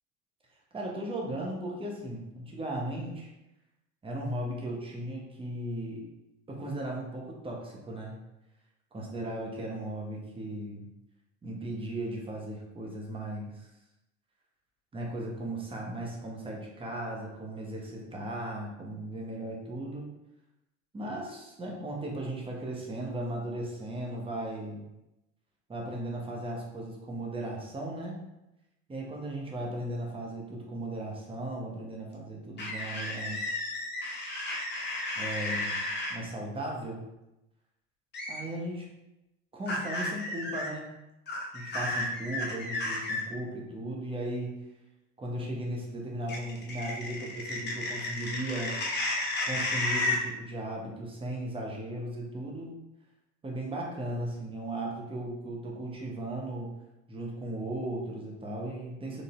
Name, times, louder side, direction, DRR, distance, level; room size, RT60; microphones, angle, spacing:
voice 1, 0.7-3.3 4.0-6.0 6.5-8.2 8.9-10.9 11.4-13.7 14.9-20.1 20.9-24.8 25.7-28.2 28.9-33.4 35.2-35.8 36.1-37.0 38.3-38.9 39.5-41.0 41.5-44.5 45.2-48.8 49.4-52.7 53.4-56.7 57.1-59.2, right 1 dB, 15° right, -2 dB, 0.9 m, -36 dB
sound 1, 32.6-36.1 38.1-38.4 39.7-40.7 41.3-43.2 46.3-50.2, left 2 dB, 30° left, 0.9 m, -32 dB
4.1 x 3.3 x 2.5 m, 0.93 s
figure-of-eight pair, 65°, 37 cm